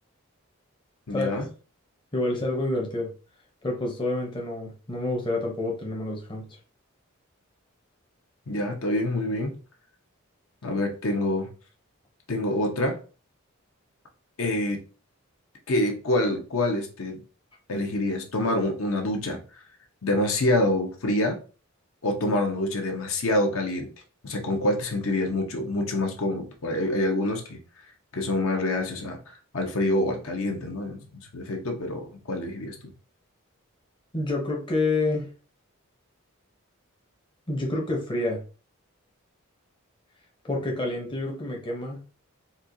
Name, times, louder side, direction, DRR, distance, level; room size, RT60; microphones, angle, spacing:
voice 1, 1.1-1.4 8.5-9.6 10.6-11.5 12.3-13.0 14.4-14.8 15.7-17.2 17.7-19.4 20.0-21.4 22.0-23.9 24.2-27.6 28.1-29.2 29.5-32.7, left 1 dB, 70° left, 0.8 m, -26 dB
voice 2, 2.1-3.1 3.6-6.4 34.1-35.3 37.5-38.4 40.4-42.0, left 2 dB, 20° left, 0.7 m, -28 dB
4.2 x 2.4 x 2.6 m
head